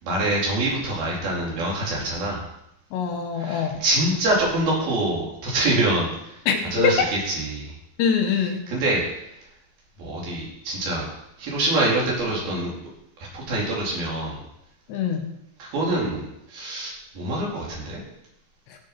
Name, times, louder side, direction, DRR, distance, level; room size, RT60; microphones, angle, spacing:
voice 1, 0.0-2.5 3.4-6.4 6.7-7.7 8.7-9.4 10.0-11.1 11.4-12.7 13.2-14.4 15.6-18.0, right 1 dB, 60° right, -4 dB, 5.9 m, -25 dB
voice 2, 2.9-3.8 6.5-7.1 8.0-8.6 14.9-15.3, left 6 dB, 90° left, 5 dB, 3.8 m, -23 dB
16.5 x 8.0 x 6.2 m, 0.83 s
omnidirectional pair, 4.8 m